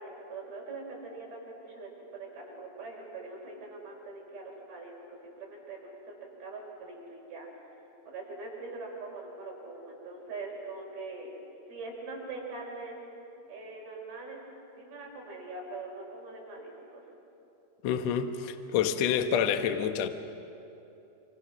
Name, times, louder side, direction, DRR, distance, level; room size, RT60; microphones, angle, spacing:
voice 1, 0.0-4.9 5.4-6.2 6.4-7.5 8.1-11.3 11.7-13.0 13.5-14.4 14.8-17.0, right 3 dB, 65° right, -3 dB, 7.1 m, -42 dB
voice 2, 17.8-20.1, left 8 dB, 70° left, 7 dB, 1.6 m, -28 dB
27.0 x 26.5 x 6.2 m, 2.9 s
omnidirectional pair, 4.6 m